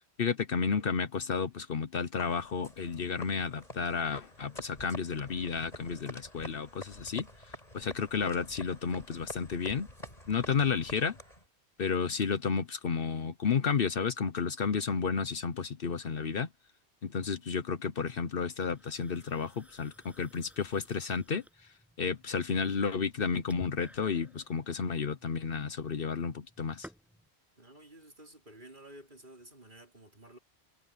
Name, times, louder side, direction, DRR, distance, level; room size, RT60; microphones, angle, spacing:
voice 1, 0.2-7.3 7.7-9.9 10.3-11.2 11.8-16.5 17.0-21.4 22.0-26.9, left 6 dB, 60° left, 1.1 m, -32 dB
sound 1, 2.2-11.5, left 1 dB, 35° left, 6.2 m, -48 dB
sound 2, 18.7-27.3, equal, ahead, 7.8 m, -58 dB
voice 2, 27.6-30.4, right 1 dB, 50° right, 5.2 m, -52 dB
omnidirectional pair, 1.1 m